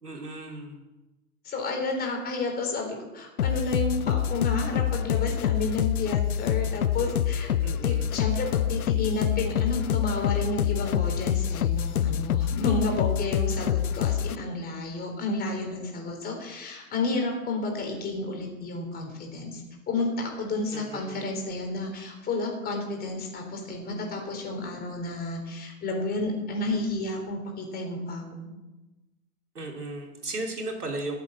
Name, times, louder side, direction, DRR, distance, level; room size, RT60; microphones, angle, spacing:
voice 1, 0.0-0.8 7.6-8.2 20.7-21.2 29.5-31.2, right 2 dB, 80° right, 1 dB, 3.2 m, -36 dB
voice 2, 1.4-19.6 19.9-28.5, left 2 dB, 20° left, 2 dB, 4.0 m, -31 dB
sound 1, 3.4-14.4, left 10 dB, 70° left, 0.6 m, -26 dB
14.5 x 8.3 x 7.6 m, 1.1 s
figure-of-eight pair, 110°, 46 cm